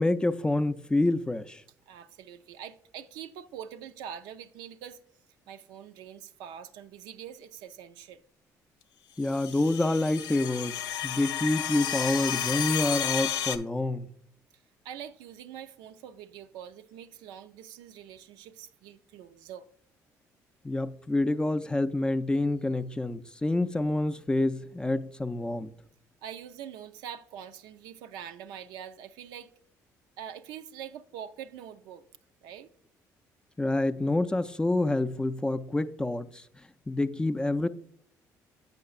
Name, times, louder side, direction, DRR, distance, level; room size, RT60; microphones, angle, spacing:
voice 1, 0.0-1.6 9.2-14.1 20.6-25.7 33.6-36.4 36.9-37.7, left 2 dB, 10° left, 0.3 m, -27 dB
voice 2, 1.9-5.0 5.5-8.2 14.5-19.7 26.2-29.5 30.2-32.0 32.4-32.7, right 9 dB, 80° right, 0.3 m, -44 dB
sound 1, 9.2-13.6, left 9 dB, 85° left, 0.4 m, -32 dB
7.6 x 5.7 x 2.3 m
supercardioid pair, 80°, 7 cm